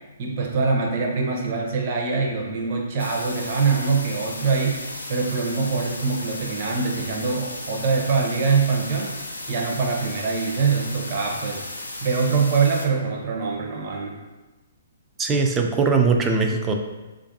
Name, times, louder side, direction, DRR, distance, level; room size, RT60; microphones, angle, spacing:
voice 1, 0.2-4.8 5.1-9.2 9.5-14.2, right 4 dB, 45° right, -1 dB, 0.7 m, -24 dB
sound 1, 3.0-12.9, left 2 dB, 90° left, 0.5 m, -35 dB
voice 2, 15.2-16.7, right 4 dB, 15° right, 3 dB, 0.4 m, -20 dB
4.4 x 2.5 x 2.6 m, 1.1 s
figure-of-eight pair, 125°, 0 cm